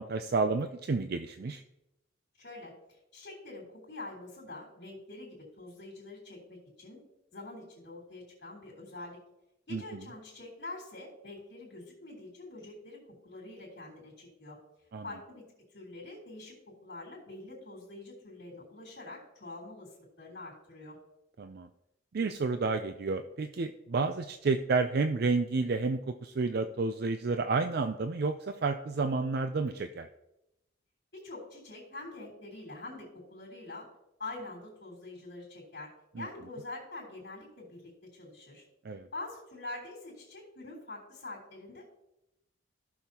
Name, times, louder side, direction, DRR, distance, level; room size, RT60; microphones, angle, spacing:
voice 1, 0.0-1.6 9.7-10.0 14.9-15.0 21.4-21.7 22.1-30.1 36.2-36.3 38.8-39.1, right 4 dB, 50° right, 8 dB, 0.4 m, -30 dB
voice 2, 2.4-7.0 7.3-9.2 9.7-14.6 15.0-15.5 15.7-21.0 31.1-33.9 34.2-38.6 39.1-41.9, left 2 dB, 60° left, -5 dB, 3.3 m, -45 dB
15.5 x 6.4 x 2.9 m, 0.88 s
head